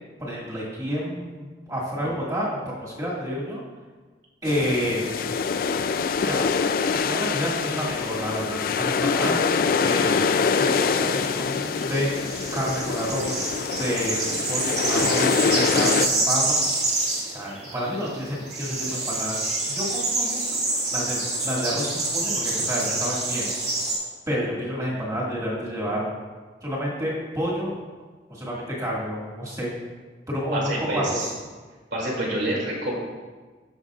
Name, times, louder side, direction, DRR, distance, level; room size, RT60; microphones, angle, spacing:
voice 1, 0.2-3.6 4.4-5.1 6.2-6.4 7.0-10.2 10.5-12.1 12.5-13.4 13.7-14.2 14.5-16.4 17.2-19.4 19.7-20.4 20.9-23.5 24.3-26.1 26.6-27.8 28.3-29.7 30.3-31.2, equal, 20° right, -5 dB, 1.9 m, -29 dB
sound 1, 4.5-16.1, left 5 dB, 50° left, 0.3 m, -25 dB
sound 2, 10.5-24.0, right 2 dB, 40° right, 1.9 m, -27 dB
voice 2, 30.5-31.3 31.9-32.9, right 1 dB, 80° right, -3 dB, 2.6 m, -27 dB
13.5 x 5.6 x 2.4 m, 1.4 s
head